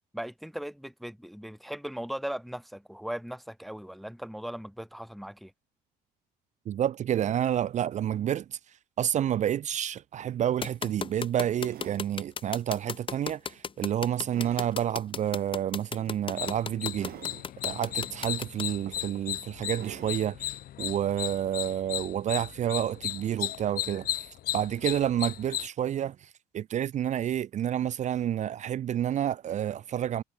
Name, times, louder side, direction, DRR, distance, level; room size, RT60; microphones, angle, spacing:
voice 1, 0.1-5.5, equal, ahead, 0.6 m, -38 dB
voice 2, 6.7-8.6 9.0-17.1 17.6-24.3 24.5-26.2 26.5-30.2, right 10 dB, 45° right, 0.5 m, -29 dB
sound 1, 9.8-9.9 10.2-10.4 11.5-12.1 12.7-13.0 13.5-14.7 16.0-16.2 16.9-17.5 18.3-18.4 18.9-19.3 19.7-20.3 21.0-21.1, right 13 dB, 60° right, 1.4 m, -47 dB
sound 2, 10.6-18.6, left 6 dB, 30° left, 0.9 m, -35 dB
sound 3, 16.4-25.7, left 13 dB, 60° left, 0.9 m, -35 dB
cardioid pair, 110°, 17 cm